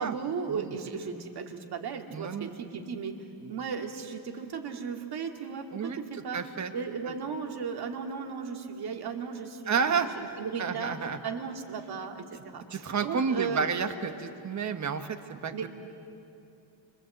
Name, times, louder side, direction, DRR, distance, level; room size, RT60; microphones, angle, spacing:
voice 1, 0.0-3.2 3.5-6.4 6.7-11.0 11.2-13.7 15.5-15.7, right 6 dB, 50° right, 4 dB, 2.2 m, -36 dB
voice 2, 2.1-2.5 3.4-3.5 5.7-6.7 7.0-7.1 9.7-11.2 12.7-15.7, right 6 dB, 35° right, 8 dB, 1.3 m, -31 dB
28.0 x 24.5 x 7.9 m, 2.7 s
cardioid pair, 175°, 47 cm